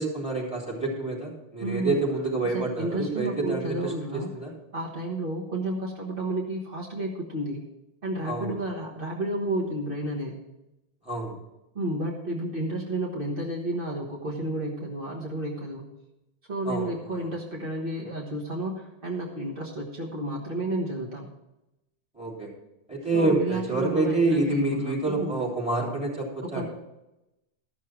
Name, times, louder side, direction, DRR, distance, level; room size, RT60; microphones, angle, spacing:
voice 1, 0.0-4.5 8.2-8.6 11.0-11.4 16.6-16.9 17.2-17.3 22.1-22.5 22.9-26.7, right 2 dB, 5° right, -3 dB, 3.3 m, -28 dB
voice 2, 1.6-2.0 2.5-4.3 4.7-7.6 8.0-10.4 11.7-15.9 16.5-21.3 23.1-25.4 26.4-26.7, right 1 dB, 60° right, -3 dB, 1.6 m, -31 dB
13.0 x 6.4 x 6.0 m, 0.95 s
omnidirectional pair, 1.0 m